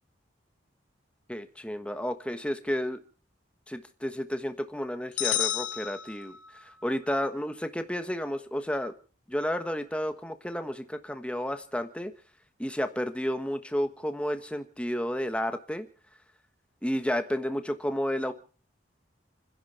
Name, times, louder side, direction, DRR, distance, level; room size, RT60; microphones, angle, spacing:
voice 1, 1.3-3.0 3.7-6.3 6.6-8.9 9.3-12.1 12.6-15.9 16.8-18.3, equal, 5° left, 8 dB, 1.3 m, -31 dB
sound 1, 5.2-6.7, left 12 dB, 70° left, 0.9 m, -31 dB
30.0 x 10.5 x 4.3 m, 0.39 s
head